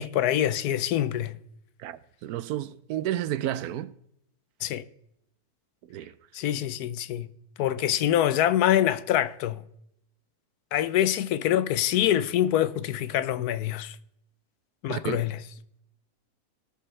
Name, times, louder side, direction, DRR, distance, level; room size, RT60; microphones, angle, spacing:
voice 1, 0.0-1.4 4.6-4.8 6.3-7.3 7.6-9.6 10.7-14.0 14.8-15.4, left 11 dB, 85° left, 1.2 m, -25 dB
voice 2, 1.8-4.0 5.9-6.1 14.9-15.2, right 12 dB, 80° right, 1.1 m, -31 dB
19.5 x 6.8 x 3.3 m
omnidirectional pair, 1.6 m